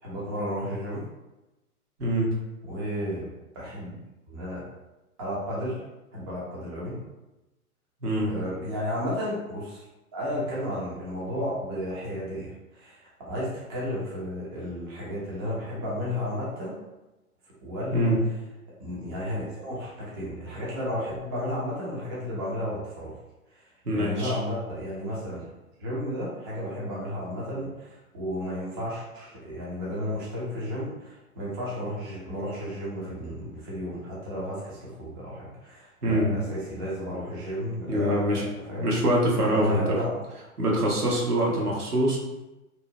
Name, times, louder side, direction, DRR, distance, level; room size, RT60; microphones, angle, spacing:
voice 1, 0.0-1.0 2.6-4.0 4.3-4.6 5.2-5.8 6.1-7.0 8.2-9.8 10.1-16.8 17.6-18.2 18.8-23.1 23.5-25.4 25.8-39.0 39.3-40.1, equal, 20° right, -7 dB, 0.3 m, -33 dB
voice 2, 2.0-2.3 8.0-8.3 17.9-18.2 23.9-24.4 36.0-36.3 37.9-38.4 38.8-40.0 40.6-42.2, right 1 dB, 85° right, -3 dB, 0.8 m, -24 dB
2.7 x 2.1 x 2.6 m, 1.0 s
figure-of-eight pair, 105°, 45 cm